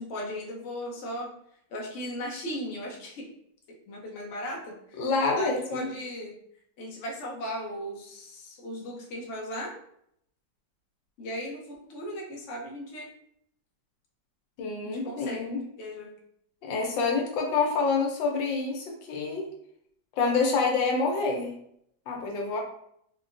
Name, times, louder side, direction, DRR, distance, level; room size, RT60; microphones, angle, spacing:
voice 1, 0.0-1.3 1.7-3.3 3.9-6.3 6.8-9.8 11.2-13.1 14.8-15.5 15.8-16.1, left 1 dB, 60° left, -2 dB, 0.8 m, -37 dB
voice 2, 5.0-5.9 14.6-15.6 16.6-19.5 20.2-21.5 22.1-22.6, left 4 dB, 85° left, 1 dB, 1.4 m, -27 dB
3.7 x 2.1 x 2.5 m, 0.70 s
omnidirectional pair, 2.0 m